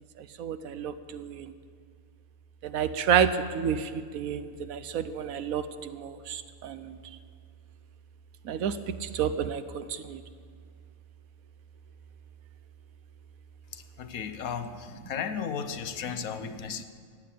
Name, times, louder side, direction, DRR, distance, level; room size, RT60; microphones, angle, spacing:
voice 1, 0.4-1.5 2.6-7.0 8.4-10.2, right 7 dB, 80° right, 11 dB, 1.2 m, -30 dB
voice 2, 13.7-16.8, left 7 dB, 85° left, 10 dB, 1.3 m, -35 dB
15.0 x 8.7 x 9.3 m, 2.1 s
omnidirectional pair, 1.5 m